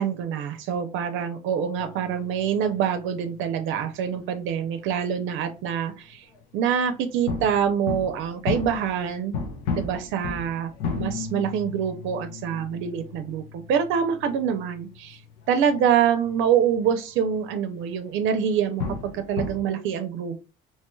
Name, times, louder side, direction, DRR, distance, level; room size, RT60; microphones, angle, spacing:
voice 1, 0.0-6.3 6.5-9.4 9.8-15.2 15.5-20.4, right 8 dB, 75° right, 8 dB, 0.5 m, -25 dB
sound 1, 1.8-5.0 5.3-5.8 6.1-6.6 7.3-16.9 17.3-17.5 17.9-18.0 18.4-19.6, left 5 dB, 90° left, 0.8 m, -35 dB
3.0 x 2.9 x 2.2 m, 0.30 s
cardioid pair, 105°, 21 cm